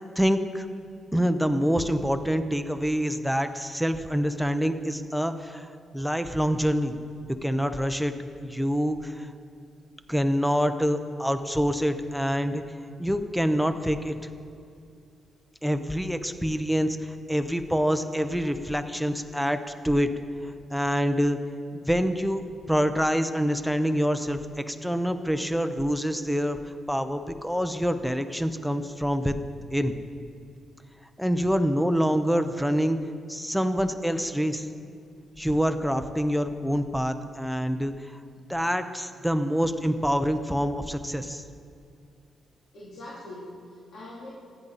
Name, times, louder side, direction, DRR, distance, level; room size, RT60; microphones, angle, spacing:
voice 1, 0.2-0.7 1.1-5.7 5.9-7.0 7.4-8.1 8.4-9.3 10.1-12.6 13.0-14.2 15.6-19.6 19.8-20.1 20.4-21.4 21.7-22.4 22.7-29.4 29.7-29.9 31.2-33.0 33.3-34.7 35.4-38.2 38.5-41.4, equal, ahead, 9 dB, 0.7 m, -26 dB
voice 2, 42.7-44.3, left 1 dB, 60° left, -7 dB, 3.2 m, -42 dB
25.5 x 10.0 x 4.1 m, 2.4 s
wide cardioid pair, 155°, 0 cm